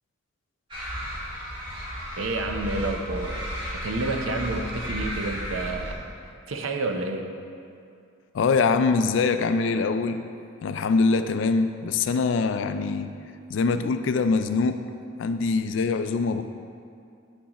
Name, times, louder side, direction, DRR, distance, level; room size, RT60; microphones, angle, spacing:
sound 1, 0.7-5.9, equal, 25° right, 1.5 m, -33 dB
voice 1, 2.2-3.4 3.8-6.0 6.5-7.2, right 2 dB, 85° right, 4 dB, 0.6 m, -29 dB
voice 2, 8.3-10.2 10.6-13.1 13.5-14.8 15.2-16.4, left 4 dB, 65° left, 10 dB, 0.3 m, -23 dB
8.1 x 6.2 x 2.9 m, 2.4 s
head